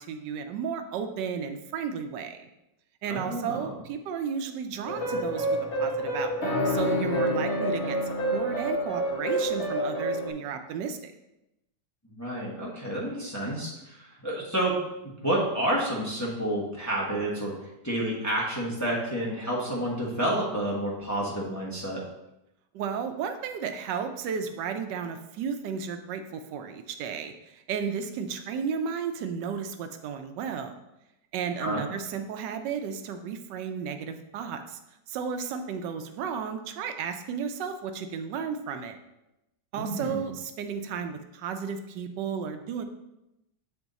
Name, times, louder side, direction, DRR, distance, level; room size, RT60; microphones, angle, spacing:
voice 1, 0.0-2.4 3.0-5.5 5.8-11.1 22.7-30.8 31.3-34.8 35.1-39.0 39.7-42.8, right 6 dB, 80° right, 7 dB, 1.2 m, -33 dB
voice 2, 3.1-3.7 12.0-14.7 15.2-17.5 17.8-22.0 31.6-31.8 39.7-40.3, right 1 dB, 10° left, -5 dB, 1.1 m, -29 dB
sound 1, 4.8-10.3, equal, 40° left, 1.5 m, -28 dB
7.9 x 3.5 x 4.0 m, 0.91 s
omnidirectional pair, 1.9 m